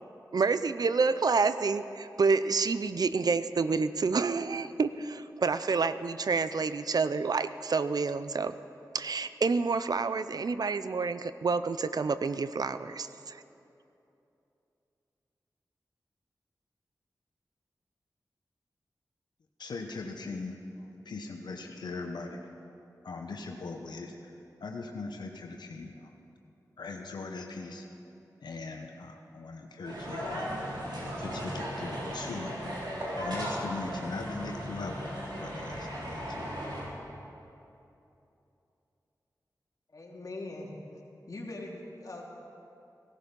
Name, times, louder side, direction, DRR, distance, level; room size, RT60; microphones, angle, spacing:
voice 1, 0.3-8.6 8.9-13.4, right 4 dB, 65° right, 12 dB, 0.5 m, -28 dB
voice 2, 19.6-22.4 23.0-24.3 24.6-26.1 26.8-27.9 28.4-30.5 31.2-32.6 33.2-36.4, left 3 dB, 85° left, 3 dB, 1.0 m, -40 dB
sound 1, 29.8-36.8, equal, 90° right, 3.5 m, -36 dB
voice 3, 39.9-40.7 41.3-42.3, left 2 dB, 55° left, -2 dB, 2.8 m, -41 dB
17.0 x 13.0 x 5.3 m, 2.8 s
cardioid pair, 55°, 7 cm